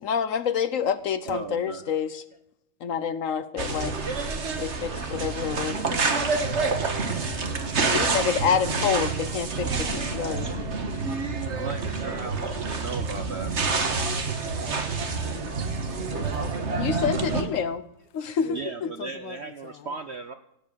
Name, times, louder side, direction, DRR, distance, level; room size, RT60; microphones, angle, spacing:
voice 1, 0.0-2.2 2.8-4.0 4.6-5.9 7.9-10.7 11.3-11.4 16.8-17.8 18.1-18.9, left 7 dB, 60° left, 0.9 m, -28 dB
voice 2, 1.3-1.8 11.5-14.1 18.5-20.3, right 5 dB, 60° right, 0.7 m, -37 dB
sound 1, 3.6-17.4, right 4 dB, 40° right, 1.6 m, -28 dB
voice 3, 15.0-15.6 16.0-16.9 18.4-18.6 19.0-19.4 19.6-19.7, left 12 dB, 85° left, 1.4 m, -42 dB
17.0 x 7.8 x 7.0 m
omnidirectional pair, 2.0 m